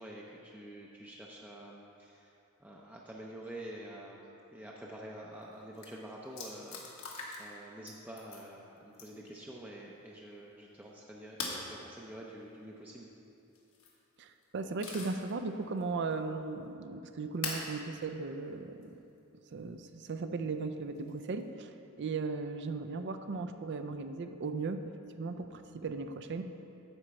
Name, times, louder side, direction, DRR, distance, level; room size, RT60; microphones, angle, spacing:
voice 1, 0.0-2.3 2.6-6.8 7.4-13.1, right 1 dB, 10° right, -3 dB, 0.5 m, -47 dB
sound 1, 5.4-5.5 5.7-5.9 6.4-7.6 7.9-8.4 8.9-9.3 11.4-11.7 13.6-14.0 14.4-15.3 15.8-15.9 17.4-17.7 18.8-18.9 21.0-21.4, left 4 dB, 75° left, 1.4 m, -41 dB
voice 2, 14.2-18.9 19.5-21.7 22.0-26.4, right 4 dB, 55° right, 8 dB, 0.5 m, -37 dB
9.8 x 4.3 x 6.9 m, 2.7 s
head